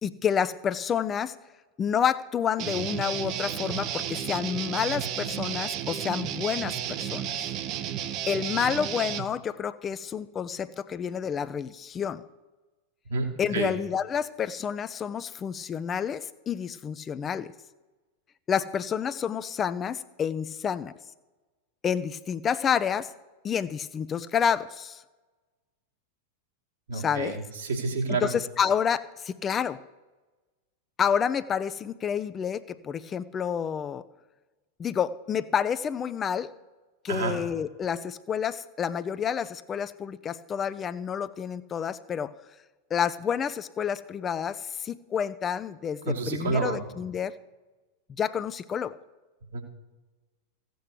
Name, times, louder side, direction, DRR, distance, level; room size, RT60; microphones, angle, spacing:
voice 1, 0.0-1.3 1.8-7.4 8.3-12.2 13.4-17.5 18.5-20.9 21.8-23.1 23.4-25.0 26.9-27.4 28.1-29.8 31.0-34.0 34.8-36.5 37.0-42.3 42.9-47.3 48.2-48.9, left 7 dB, 25° left, 13 dB, 0.5 m, -29 dB
Guitar, 2.6-9.3, right 10 dB, 40° right, 0.8 m, -32 dB
voice 2, 13.1-13.8 26.9-28.3 37.1-37.3 46.1-46.8 49.5-49.6, right 3 dB, 65° right, 1 dB, 2.1 m, -29 dB
15.0 x 7.8 x 6.8 m, 1.2 s
figure-of-eight pair, 90°, 0 cm